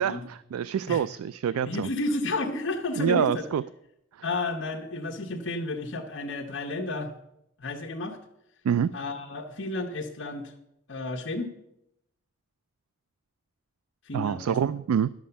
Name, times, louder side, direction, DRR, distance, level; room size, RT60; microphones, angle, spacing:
voice 1, 0.0-1.9 3.0-3.6 8.6-8.9 14.1-15.1, right 8 dB, 85° right, 17 dB, 0.3 m, -26 dB
voice 2, 1.6-3.4 4.2-7.1 7.6-8.2 8.9-10.5 10.9-11.5 14.0-14.6, left 2 dB, 55° left, -2 dB, 1.0 m, -32 dB
10.5 x 7.3 x 6.9 m, 0.82 s
head